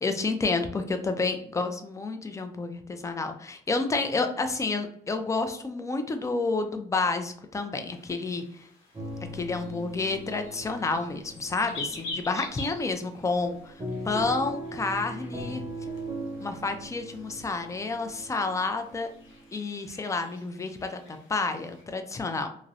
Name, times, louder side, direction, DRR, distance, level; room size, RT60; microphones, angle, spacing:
voice 1, 0.0-8.4 9.3-13.7 14.0-15.6 16.4-19.1 19.5-22.5, left 3 dB, 15° left, 7 dB, 0.3 m, -30 dB
sound 1, 7.9-21.8, left 3 dB, 85° left, 0.6 m, -46 dB
sound 2, 8.9-19.5, right 1 dB, 25° right, 0.6 m, -40 dB
2.6 x 2.0 x 2.4 m, 0.64 s
cardioid pair, 90°, 20 cm